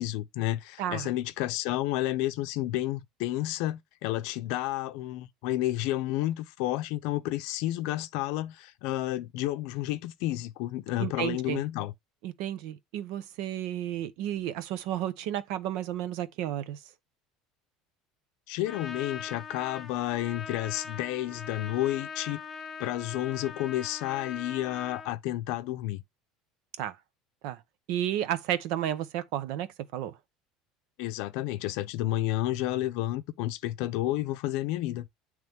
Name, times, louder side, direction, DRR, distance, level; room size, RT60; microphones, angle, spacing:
voice 1, 0.0-11.9 18.5-22.4 22.8-26.0 31.0-35.0, left 15 dB, 60° left, 0.6 m, -31 dB
voice 2, 11.0-11.6 12.2-16.8 26.8-27.0 27.4-27.6 27.9-30.1, right 11 dB, 55° right, 0.7 m, -32 dB
Trumpet, 18.6-25.1, left 5 dB, 15° left, 0.6 m, -41 dB
9.3 x 3.1 x 3.5 m
cardioid pair, 180°, 0 cm